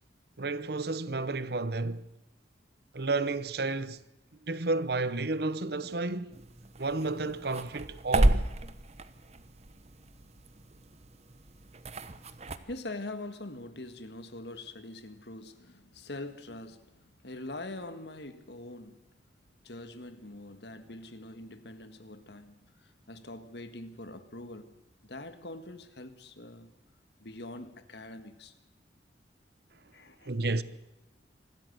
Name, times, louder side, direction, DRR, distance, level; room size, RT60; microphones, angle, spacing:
voice 1, 0.4-2.1 2.9-4.0 4.4-6.4 6.8-8.5 30.2-30.6, right 3 dB, 60° right, 0.9 m, -31 dB
sound 1, 6.3-12.6, right 1 dB, 35° right, 1.0 m, -32 dB
voice 2, 12.3-19.0 19.6-26.7 27.2-28.5 29.9-30.6, left 2 dB, 65° left, 1.7 m, -44 dB
25.0 x 13.5 x 8.0 m
head